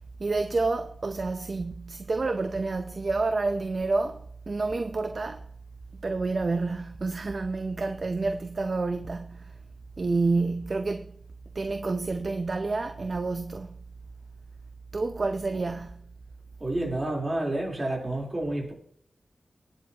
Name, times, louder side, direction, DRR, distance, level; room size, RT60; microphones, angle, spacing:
voice 1, 0.2-5.5 6.0-9.5 10.0-11.1 11.5-13.8 14.9-16.0, right 3 dB, 50° right, 0.6 m, -29 dB
voice 2, 16.6-18.7, right 1 dB, 30° right, 3.6 m, -29 dB
18.0 x 7.9 x 2.9 m
wide cardioid pair, 105°, 0 cm